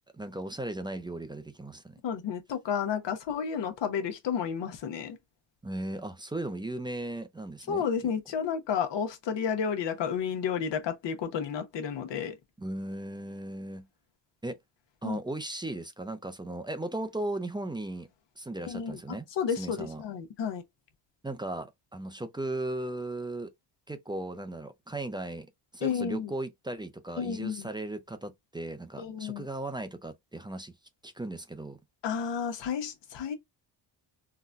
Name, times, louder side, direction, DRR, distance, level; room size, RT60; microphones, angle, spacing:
voice 1, 0.2-1.9 5.6-7.9 12.6-13.9 14.4-14.6 15.0-18.1 18.4-19.3 19.6-20.0 21.2-23.5 23.9-25.5 25.7-30.7 31.0-31.8, right 1 dB, 10° right, 0.4 m, -37 dB
voice 2, 2.0-5.2 7.7-12.3 15.0-15.2 18.7-19.0 19.4-20.6 25.8-26.3 27.2-27.7 29.0-29.5 32.0-33.4, left 7 dB, 65° left, 1.0 m, -31 dB
3.9 x 2.2 x 2.4 m
cardioid pair, 90°, 47 cm